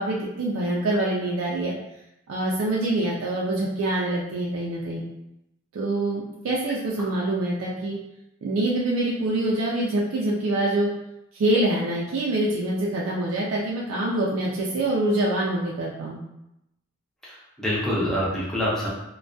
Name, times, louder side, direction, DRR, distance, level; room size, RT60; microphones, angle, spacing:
voice 1, 0.0-1.7 2.3-5.0 5.7-8.0 8.4-10.9 11.3-16.2, right 1 dB, 80° right, -4 dB, 0.4 m, -25 dB
voice 2, 17.2-18.9, equal, 5° left, -8 dB, 0.5 m, -26 dB
2.2 x 2.2 x 2.5 m, 0.87 s
head